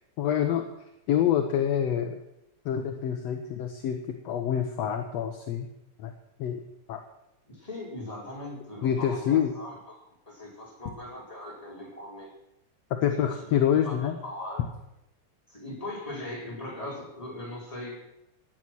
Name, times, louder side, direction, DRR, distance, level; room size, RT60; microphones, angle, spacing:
voice 1, 0.2-0.7 1.1-2.2 2.7-5.7 6.0-6.1 6.4-6.6 6.9-7.0 8.8-9.5 13.0-14.2, left 9 dB, 65° left, 5 dB, 2.0 m, -26 dB
voice 2, 7.5-10.0 10.3-12.3 13.1-13.5 13.8-14.7 15.5-18.0, left 1 dB, 10° left, -3 dB, 4.6 m, -39 dB
16.5 x 10.0 x 6.1 m, 0.85 s
omnidirectional pair, 3.4 m